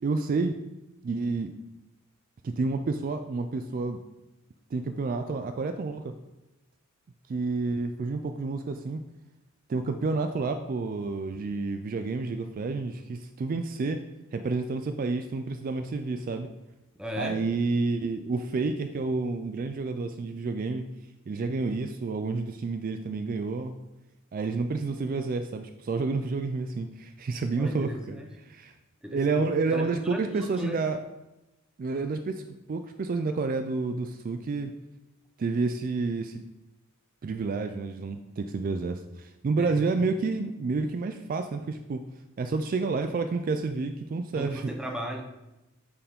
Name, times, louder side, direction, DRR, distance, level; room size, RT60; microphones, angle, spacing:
voice 1, 0.0-0.6 1.0-1.5 2.4-4.0 4.7-6.1 7.3-9.0 9.7-14.0 14.3-16.5 17.2-20.8 21.3-23.7 24.3-28.7 29.1-31.0 31.8-34.7 35.4-36.4 37.2-42.1 42.4-44.7, right 3 dB, 40° right, 8 dB, 0.3 m, -29 dB
voice 2, 17.0-17.4 27.5-28.3 29.0-29.4 29.7-30.8 39.6-39.8 44.3-45.2, equal, 5° right, 1 dB, 0.7 m, -36 dB
8.6 x 4.7 x 3.6 m, 0.97 s
head